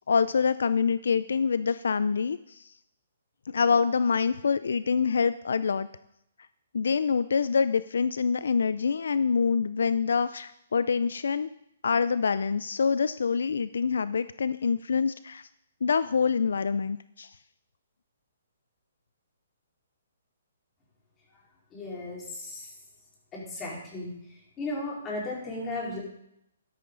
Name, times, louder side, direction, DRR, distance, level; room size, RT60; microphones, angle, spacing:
voice 1, 0.1-2.7 3.5-5.9 6.7-11.5 11.8-15.5 15.8-17.3, left 5 dB, 80° left, 15 dB, 0.4 m, -26 dB
voice 2, 21.7-22.7 23.3-24.1 24.6-26.0, left 2 dB, 20° left, -4 dB, 4.3 m, -35 dB
12.5 x 11.5 x 3.9 m, 0.77 s
hypercardioid pair, 145°, 0 cm